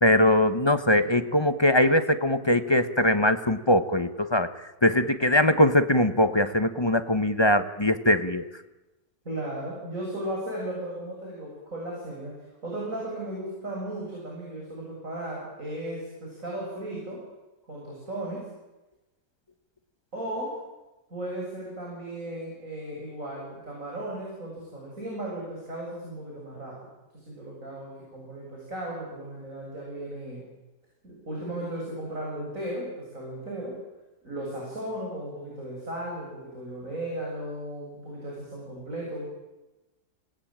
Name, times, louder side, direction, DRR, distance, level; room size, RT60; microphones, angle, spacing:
voice 1, 0.0-4.5 4.8-8.4, left 1 dB, 20° left, 10 dB, 1.0 m, -21 dB
voice 2, 9.2-12.3 12.6-17.2 17.7-18.5 20.1-20.6 21.1-26.8 27.1-30.5 31.0-33.8 34.2-39.3, right 1 dB, 50° right, -3 dB, 7.9 m, -36 dB
27.5 x 20.0 x 8.9 m, 1.1 s
omnidirectional pair, 1.7 m